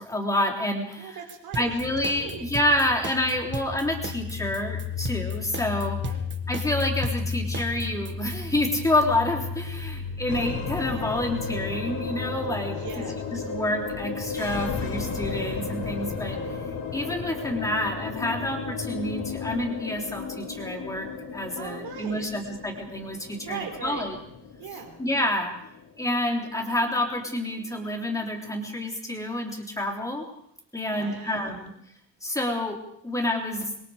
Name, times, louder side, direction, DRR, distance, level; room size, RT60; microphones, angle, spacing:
voice 1, 0.0-1.2 1.5-6.2 6.5-13.0 13.5-16.4 16.9-24.2 25.0-25.5 26.0-30.2 30.7-31.7 32.2-33.8, left 1 dB, 10° left, 1 dB, 3.6 m, -28 dB
voice 2, 0.9-1.7 2.1-2.5 6.0-6.2 10.2-10.3 12.7-13.5 21.6-22.3 23.4-24.1 24.6-25.0 30.7-31.7, right 7 dB, 75° right, 5 dB, 3.8 m, -40 dB
sound 1, 1.3-8.4, right 4 dB, 30° right, 1.7 m, -36 dB
sound 2, 1.8-19.7, left 5 dB, 75° left, 4.6 m, -36 dB
sound 3, 10.3-28.8, left 4 dB, 55° left, 3.0 m, -35 dB
26.5 x 22.0 x 4.9 m, 0.73 s
cardioid pair, 180°, 36 cm